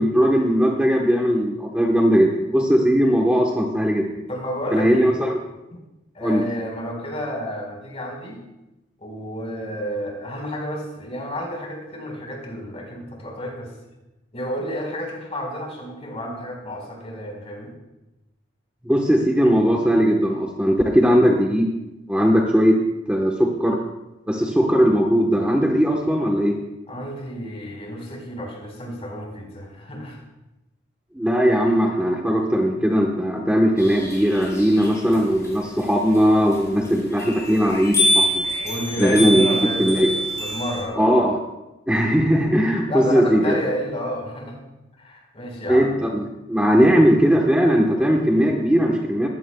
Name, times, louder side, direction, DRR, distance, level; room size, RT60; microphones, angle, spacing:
voice 1, 0.0-4.1 4.7-5.4 6.2-6.4 18.8-21.7 22.1-22.8 23.1-23.8 24.3-26.5 31.1-38.4 39.0-40.1 41.0-41.4 41.9-43.6 45.7-49.3, equal, 5° right, -1 dB, 1.1 m, -19 dB
voice 2, 4.3-5.2 6.1-8.4 9.0-13.7 14.3-17.7 26.9-30.2 38.6-40.1 40.4-41.1 42.9-44.6 45.0-45.9, equal, 35° left, 0 dB, 4.4 m, -31 dB
sound 1, 33.8-40.8, equal, 20° left, 5.7 m, -26 dB
21.0 x 15.5 x 2.3 m, 0.97 s
head